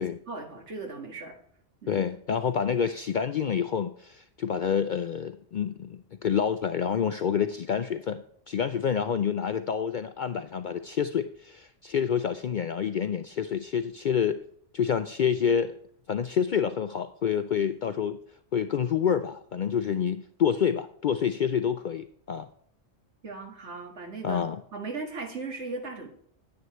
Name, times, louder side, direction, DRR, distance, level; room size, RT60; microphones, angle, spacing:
voice 1, 0.0-1.4 1.8-2.0 23.2-24.4 24.7-26.1, right 3 dB, 70° right, 3 dB, 2.0 m, -37 dB
voice 2, 1.9-14.4 14.7-15.8 16.1-18.2 18.5-22.5 24.2-24.6, left 7 dB, 60° left, 10 dB, 0.5 m, -28 dB
9.6 x 9.2 x 3.1 m, 0.63 s
omnidirectional pair, 1.2 m